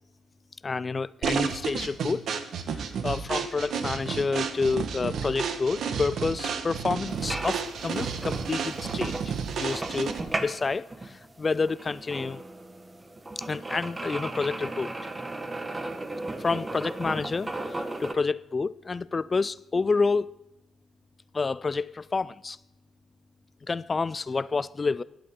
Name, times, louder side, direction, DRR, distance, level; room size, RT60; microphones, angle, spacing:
voice 1, 0.6-2.3 2.7-12.4 13.4-14.9 16.4-20.3 21.3-22.6 23.7-25.0, left 4 dB, 30° left, 0.3 m, -29 dB
sound 1, 1.2-10.4, right 6 dB, 65° right, 1.1 m, -31 dB
sound 2, 7.1-18.1, right 2 dB, 20° right, 1.0 m, -36 dB
14.0 x 11.0 x 3.6 m
cardioid pair, 90°, 0 cm